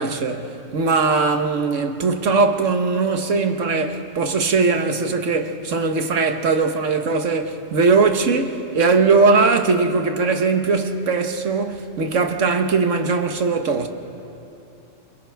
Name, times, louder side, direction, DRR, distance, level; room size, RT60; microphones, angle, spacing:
voice 1, 0.0-13.9, right 4 dB, 90° right, 1.5 m, -20 dB
29.0 x 27.5 x 3.5 m
omnidirectional pair, 1.2 m